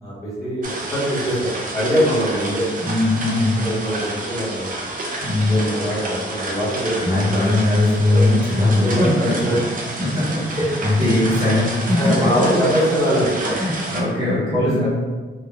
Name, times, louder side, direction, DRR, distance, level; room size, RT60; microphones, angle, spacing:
voice 1, 0.0-2.7 3.5-7.4 8.0-8.3 8.8-9.1 9.4-9.6 10.6-11.0 11.9-13.6 14.5-14.9, equal, 15° left, -11 dB, 0.8 m, -23 dB
sound 1, 0.6-14.0, right 2 dB, 40° right, 0.4 m, -30 dB
voice 2, 2.8-3.6 5.2-5.6 7.0-9.4 10.0-12.0 13.5-14.9, left 2 dB, 25° right, -9 dB, 0.8 m, -19 dB
3.4 x 2.0 x 2.3 m, 1.4 s
wide cardioid pair, 180°, 21 cm